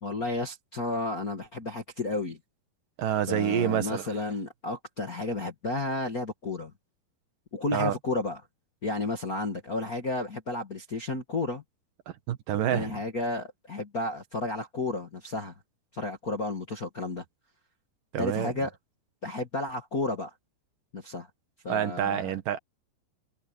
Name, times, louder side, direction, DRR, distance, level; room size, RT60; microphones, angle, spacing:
voice 1, 0.0-2.4 3.3-6.7 7.5-8.4 8.8-11.6 12.7-15.5 15.9-17.2 18.2-18.7 19.2-20.3 20.9-21.3 21.6-22.3, left 2 dB, 50° left, 1.0 m, -32 dB
voice 2, 3.0-4.1 7.7-8.0 12.3-13.0 18.1-18.5 21.7-22.6, right 10 dB, 60° right, 3.0 m, -28 dB
omnidirectional pair, 4.7 m